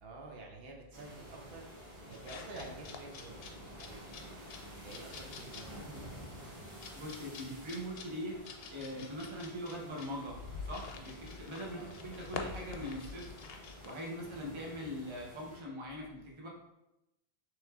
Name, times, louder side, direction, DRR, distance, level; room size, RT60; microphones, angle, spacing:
voice 1, 0.0-6.6 11.7-11.9, right 2 dB, 70° right, 0 dB, 0.9 m, -50 dB
sound 1, 0.9-15.6, equal, 55° right, 1.7 m, -51 dB
sound 2, 2.1-14.0, left 5 dB, 75° left, 0.8 m, -48 dB
voice 2, 6.9-8.4 8.7-10.4 10.6-13.5 13.8-16.5, equal, 30° right, -1 dB, 0.8 m, -42 dB
6.2 x 3.2 x 2.3 m, 0.91 s
omnidirectional pair, 1.0 m